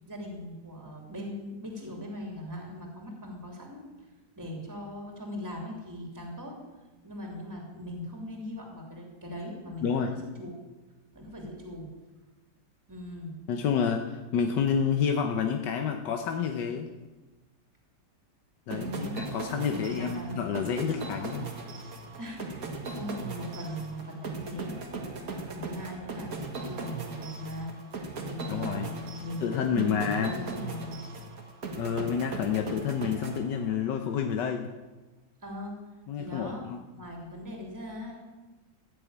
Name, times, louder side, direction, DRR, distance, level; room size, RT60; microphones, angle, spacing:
voice 1, 0.1-3.8 4.4-6.6 7.0-10.5 11.1-11.9 12.9-13.4 18.7-19.2 19.6-20.4 22.2-27.7 28.2-31.0 35.4-35.8 36.2-38.2, left 1 dB, 10° right, 0 dB, 2.8 m, -40 dB
voice 2, 9.8-10.1 13.5-16.9 18.7-21.5 28.5-28.9 29.4-30.4 31.8-34.7 36.1-36.8, left 7 dB, 80° left, 5 dB, 1.5 m, -29 dB
sound 1, 18.7-34.0, right 3 dB, 55° right, 1.9 m, -39 dB
14.5 x 7.1 x 8.7 m, 1.1 s
omnidirectional pair, 1.9 m